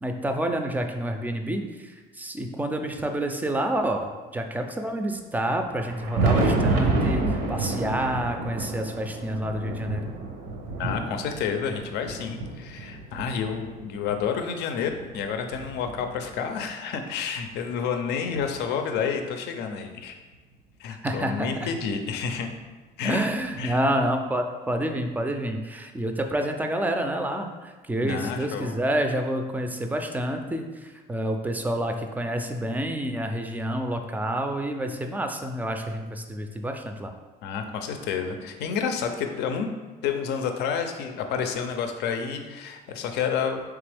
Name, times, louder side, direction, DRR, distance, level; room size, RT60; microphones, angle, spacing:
voice 1, 0.0-10.1 21.0-21.7 23.0-37.1, right 1 dB, 10° right, 5 dB, 0.4 m, -28 dB
Thunder, 5.6-14.2 14.9-16.6 17.7-17.8 18.4-18.5 20.3-20.4 21.8-21.9 23.5-23.6, right 3 dB, 75° right, 0.6 m, -29 dB
voice 2, 10.8-20.2 20.8-22.5 23.0-23.2 23.6-23.8 28.0-28.7 37.4-39.7 40.0-43.6, left 6 dB, 80° left, 6 dB, 0.5 m, -29 dB
3.5 x 3.4 x 3.4 m, 1.3 s
cardioid pair, 110°, 17 cm